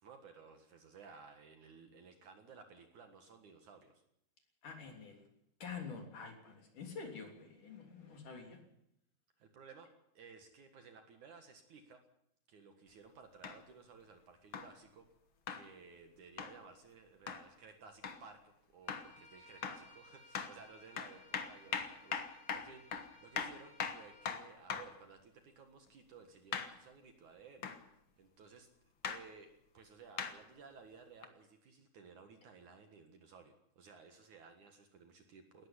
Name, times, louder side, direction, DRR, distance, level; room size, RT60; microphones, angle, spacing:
voice 1, 0.0-4.0 9.4-12.0 12.5-15.1 15.5-18.4 18.7-28.7 29.0-35.7, right 5 dB, 55° right, 6 dB, 2.7 m, -57 dB
voice 2, 4.6-5.3 5.6-8.6, left 5 dB, 55° left, 3 dB, 4.6 m, -47 dB
sound 1, 13.4-13.6 14.5-14.7 15.5-15.7 16.4-16.6 17.3-17.4 18.0-18.2 18.9-19.1 19.6-19.9 20.3-20.6 21.0-25.0 26.5-26.8 27.6-27.8 29.0-29.2 30.2-30.4 31.2-31.3, left 6 dB, 70° left, 1.1 m, -40 dB
Bowed string instrument, 18.8-24.3, left 1 dB, 25° left, 4.2 m, -61 dB
19.0 x 14.5 x 10.0 m, 0.77 s
omnidirectional pair, 4.6 m